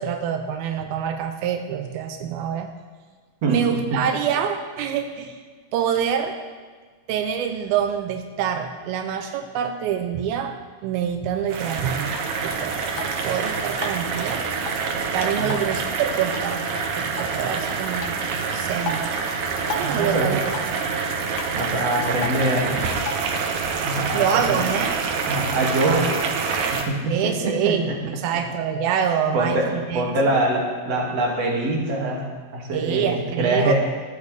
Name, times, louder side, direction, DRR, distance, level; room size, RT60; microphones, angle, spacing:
voice 1, 0.0-2.7 3.5-5.4 5.7-6.4 7.1-12.2 12.4-12.9 13.2-14.5 15.1-16.7 17.0-18.2 18.5-19.0 19.7-20.5 24.1-25.0 25.8-26.1 27.1-30.1 32.7-33.7, right 8 dB, 85° right, 6 dB, 2.7 m, -26 dB
sound 1, 11.5-26.8, right 5 dB, 65° right, 2.3 m, -26 dB
Drip, 11.8-23.8, left 4 dB, 75° left, 2.8 m, -38 dB
voice 2, 19.8-20.4 21.5-22.8 23.8-24.4 25.3-26.1 26.5-27.9 29.3-32.3 32.5-33.7, right 2 dB, 45° right, -2 dB, 3.3 m, -24 dB
20.5 x 13.5 x 3.5 m, 1.5 s
omnidirectional pair, 4.2 m